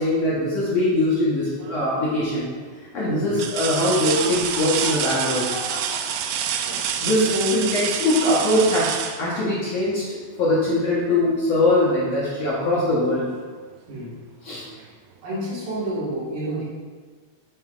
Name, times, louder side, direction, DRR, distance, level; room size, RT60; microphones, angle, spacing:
voice 1, 0.0-2.5 2.8-5.5 7.0-10.0 10.4-13.3 14.4-14.7, left 1 dB, 60° left, -8 dB, 1.9 m, -22 dB
sound 1, 1.6-2.1 2.6-2.7 3.3-10.0 11.8-11.9 12.4-13.4 14.8-14.9, right 9 dB, 85° right, 1.8 m, -28 dB
Laughter, 3.9-7.1, left 2 dB, 80° left, 2.4 m, -37 dB
voice 2, 6.7-7.7 13.9-14.2 14.7-14.9 15.2-16.6, left 1 dB, 70° right, -7 dB, 3.4 m, -29 dB
7.9 x 7.4 x 2.5 m, 1.5 s
omnidirectional pair, 4.2 m